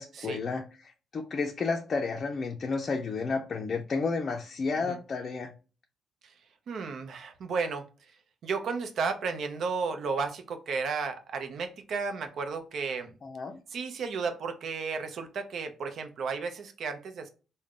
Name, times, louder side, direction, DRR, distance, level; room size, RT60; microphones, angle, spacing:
voice 1, 0.0-5.5 13.2-13.6, left 4 dB, 45° left, 0.4 m, -32 dB
voice 2, 6.7-7.9 8.4-13.1 13.7-17.3, right 5 dB, 65° right, 0.6 m, -33 dB
3.5 x 2.1 x 3.6 m
cardioid pair, 90°, 0 cm